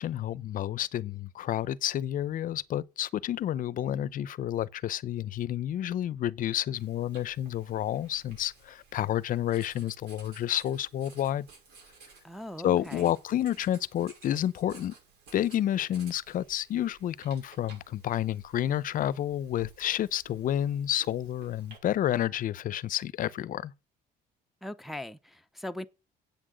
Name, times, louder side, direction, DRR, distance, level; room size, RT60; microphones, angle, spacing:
voice 1, 0.0-11.5 12.6-14.9 15.3-23.7, left 11 dB, 55° left, 0.6 m, -30 dB
Writing, 6.8-21.8, right 4 dB, 80° right, 6.1 m, -55 dB
voice 2, 12.2-13.1 24.6-25.9, left 1 dB, ahead, 0.6 m, -40 dB
8.4 x 6.1 x 7.8 m
cardioid pair, 110°, 17 cm